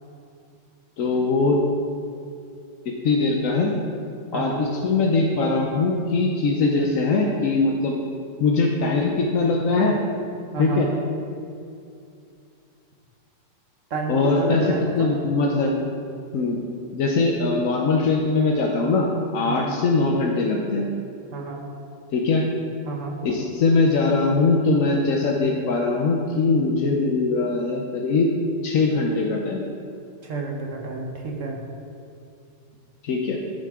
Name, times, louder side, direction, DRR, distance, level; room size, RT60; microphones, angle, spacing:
voice 1, 1.0-1.6 2.8-3.7 4.3-8.0 8.4-10.0 10.6-10.9 14.1-15.8 16.3-16.6 16.9-19.1 19.3-20.9 22.1-22.4 23.2-28.3 28.6-29.6 33.0-33.4, left 3 dB, 60° left, 0 dB, 0.9 m, -21 dB
voice 2, 4.3-4.6 10.5-10.9 13.9-15.1 19.4-19.7 21.3-21.7 22.8-23.2 30.2-31.6, right 3 dB, 50° right, 0 dB, 1.2 m, -29 dB
9.2 x 9.2 x 3.7 m, 2.5 s
omnidirectional pair, 2.1 m